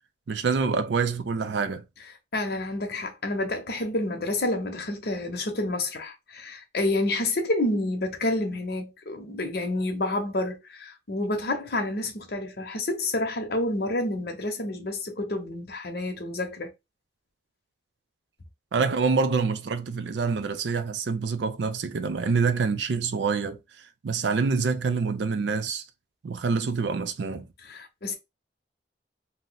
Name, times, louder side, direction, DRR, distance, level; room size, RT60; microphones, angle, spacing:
voice 1, 0.3-1.8 18.7-23.6 24.0-25.8 26.2-27.5, right 5 dB, 75° right, 0.4 m, -26 dB
voice 2, 2.3-16.7 27.7-28.1, left 2 dB, 60° left, 0.8 m, -29 dB
2.7 x 2.1 x 3.9 m
head